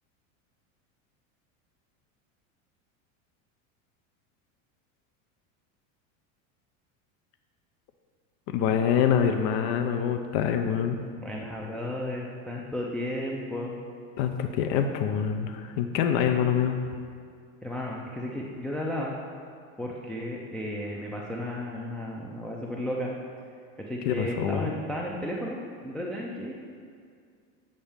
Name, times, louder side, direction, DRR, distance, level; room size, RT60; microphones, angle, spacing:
voice 1, 8.5-11.0 14.2-16.8 24.1-24.7, left 8 dB, 55° left, 6 dB, 0.6 m, -25 dB
voice 2, 11.2-13.7 16.2-16.4 17.6-19.2 19.8-23.1 23.8-26.5, left 1 dB, 5° left, -3 dB, 0.3 m, -34 dB
8.8 x 5.3 x 3.5 m, 2.2 s
supercardioid pair, 120°, 41 cm